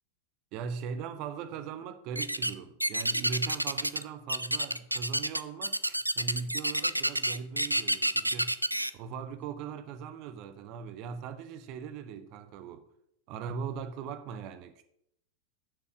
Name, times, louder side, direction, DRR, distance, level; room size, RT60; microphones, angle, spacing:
voice 1, 0.5-8.6 8.9-12.9 13.3-14.8, right 6 dB, 40° right, 0.9 m, -40 dB
sound 1, 2.1-2.5 2.8-4.0 4.3-8.9, right 1 dB, 85° right, 0.3 m, -29 dB
7.0 x 6.8 x 6.2 m
figure-of-eight pair, 90°, 0 cm